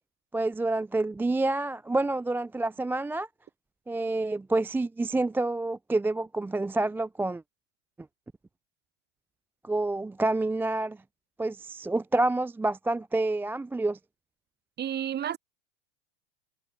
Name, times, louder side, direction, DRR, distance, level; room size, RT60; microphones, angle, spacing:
voice 1, 0.3-3.3 3.9-7.4 9.6-11.0 11.4-14.0, right 2 dB, 5° right, 0.4 m, -28 dB
voice 2, 14.8-15.4, right 10 dB, 25° right, 1.3 m, -31 dB
hypercardioid pair, 100°, 37 cm